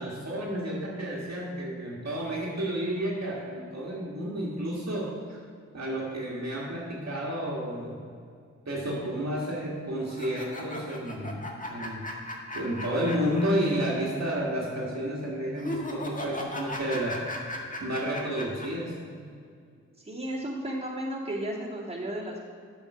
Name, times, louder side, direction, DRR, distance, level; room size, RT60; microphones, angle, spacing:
voice 1, 0.0-5.4 5.7-8.0 8.7-12.1 12.5-17.3 17.8-19.0, equal, 55° right, -4 dB, 1.8 m, -31 dB
sound 1, 10.1-13.8 14.0-14.1 15.6-18.7, left 1 dB, 25° left, 1.6 m, -37 dB
voice 2, 20.1-22.4, right 1 dB, 20° right, -5 dB, 2.5 m, -33 dB
7.9 x 5.8 x 6.1 m, 2.2 s
cardioid pair, 45°, 31 cm